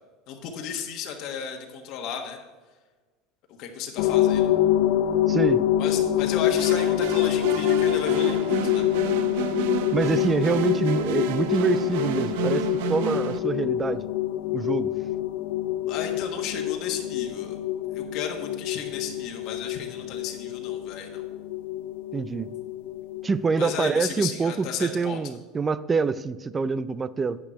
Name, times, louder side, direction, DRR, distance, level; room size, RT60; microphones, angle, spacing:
voice 1, 0.3-2.4 3.6-4.5 5.8-8.8 15.7-17.6 17.9-21.2 23.6-25.2, left 7 dB, 50° left, 3 dB, 1.3 m, -34 dB
sound 1, 4.0-23.7, left 12 dB, 75° left, 0.5 m, -26 dB
voice 2, 5.3-5.7 9.9-14.0 14.5-14.9 22.1-22.5 23.2-27.4, right 5 dB, 15° right, 17 dB, 0.4 m, -26 dB
sound 2, 6.5-13.4, right 11 dB, 75° right, 0.6 m, -32 dB
10.0 x 8.8 x 4.5 m, 1.3 s
supercardioid pair, 150°, 0 cm